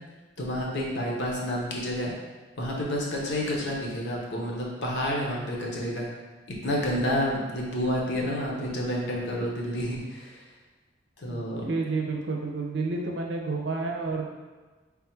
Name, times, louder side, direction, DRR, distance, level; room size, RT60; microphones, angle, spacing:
voice 1, 0.4-2.1 2.6-6.1 6.5-10.4 11.2-11.6, equal, 65° left, -3 dB, 0.9 m, -29 dB
voice 2, 11.3-14.2, right 3 dB, 65° right, 1 dB, 0.6 m, -30 dB
3.5 x 2.4 x 4.4 m, 1.3 s
head